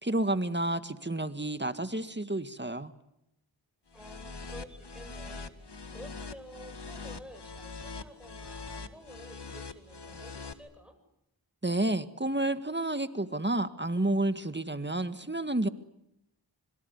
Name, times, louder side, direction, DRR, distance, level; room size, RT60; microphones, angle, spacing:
voice 1, 0.0-2.9 11.6-15.7, right 1 dB, 25° right, 10 dB, 1.8 m, -30 dB
sound 1, 3.9-10.5, left 4 dB, 65° left, 1.9 m, -43 dB
voice 2, 3.9-11.0, equal, ahead, 6 dB, 7.7 m, -51 dB
26.0 x 22.5 x 9.6 m, 0.83 s
wide cardioid pair, 40°, 44 cm